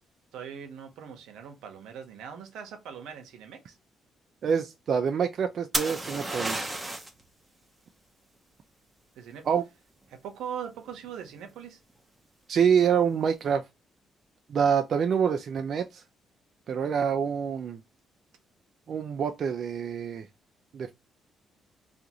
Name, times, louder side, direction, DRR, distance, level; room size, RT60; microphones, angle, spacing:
voice 1, 0.3-3.8 9.2-9.5 10.1-11.8, right 8 dB, 85° right, 0.7 m, -41 dB
voice 2, 4.4-6.8 9.5-9.6 12.5-13.6 14.5-16.0 16.7-17.8 18.9-20.3 20.7-20.9, right 7 dB, 60° right, 0.3 m, -26 dB
sound 1, 5.7-7.2 10.9-11.3, right 1 dB, 15° right, 0.7 m, -31 dB
2.5 x 2.4 x 2.8 m
cardioid pair, 90°, 0 cm